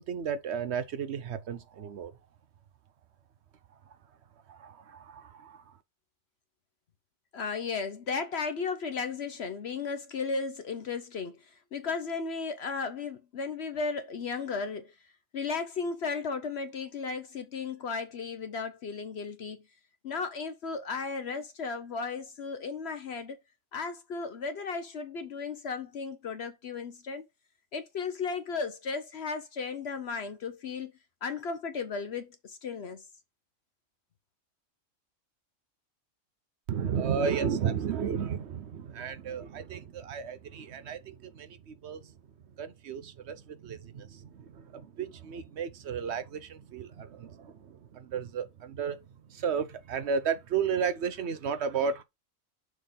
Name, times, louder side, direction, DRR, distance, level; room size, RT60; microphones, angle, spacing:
voice 1, 0.0-2.1 4.5-5.6 36.7-42.0 42.6-49.0 49.3-52.0, right 6 dB, 60° right, 0.9 m, -33 dB
voice 2, 7.3-11.4 11.7-14.9 15.3-19.6 20.0-23.4 23.7-27.2 27.7-30.9 31.2-33.0, left 4 dB, 55° left, 0.9 m, -35 dB
6.5 x 3.5 x 5.6 m
omnidirectional pair, 1.4 m